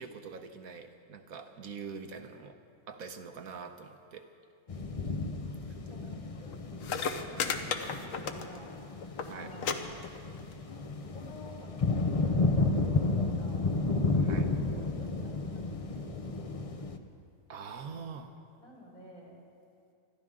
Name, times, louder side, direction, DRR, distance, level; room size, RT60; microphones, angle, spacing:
voice 1, 0.0-2.6 2.9-4.3 7.3-7.5 9.3-9.5 14.2-14.5 17.5-18.3, right 5 dB, 70° right, 6 dB, 1.4 m, -44 dB
sound 1, 4.7-17.0, left 3 dB, 40° left, 0.5 m, -32 dB
voice 2, 5.9-6.6 7.2-8.7 9.3-9.8 11.1-13.7 14.7-15.7 15.9-16.7 17.7-18.1 18.6-19.3, equal, 80° left, -5 dB, 5.0 m, -51 dB
sound 2, 6.5-6.6 6.8-8.7 9.0-9.3 9.6-9.7 10.0-10.5 11.4-11.5, left 6 dB, 65° left, 1.2 m, -33 dB
26.0 x 13.5 x 3.8 m, 2.5 s
omnidirectional pair, 1.6 m